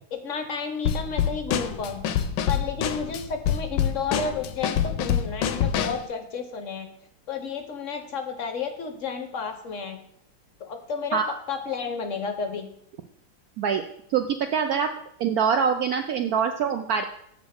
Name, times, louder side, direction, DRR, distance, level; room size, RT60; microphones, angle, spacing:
voice 1, 0.1-2.0 2.5-6.9 7.3-10.0 10.7-11.2 11.5-12.7, left 5 dB, 55° left, 6 dB, 0.9 m, -32 dB
Drum kit / Snare drum, 0.9-6.1, left 9 dB, 75° left, 1.2 m, -26 dB
voice 2, 14.1-14.9 15.2-17.0, right 7 dB, 80° right, 6 dB, 0.8 m, -24 dB
8.1 x 4.2 x 6.4 m, 0.70 s
omnidirectional pair, 2.2 m